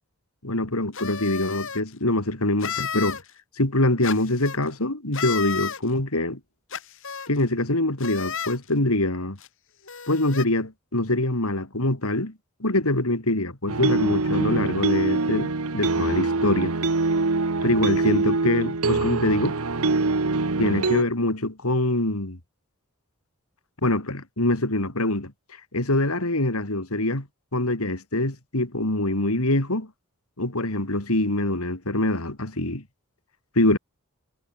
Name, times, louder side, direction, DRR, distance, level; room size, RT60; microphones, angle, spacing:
voice 1, 0.4-3.2 3.6-6.4 7.3-9.4 10.1-12.3 12.6-16.7 17.6-19.6 20.6-22.4 23.8-25.3 25.7-27.3 27.5-29.9 30.4-32.8 33.6-33.8, left 1 dB, 85° left, 3.8 m, -24 dB
sound 1, 0.9-1.8 2.6-3.2 4.0-4.6 5.1-5.8 6.7-7.3 8.0-8.6 9.4-9.5 9.9-10.4, left 7 dB, 65° left, 4.1 m, -32 dB
sound 2, 13.7-21.0, right 3 dB, 85° right, 1.2 m, -24 dB
head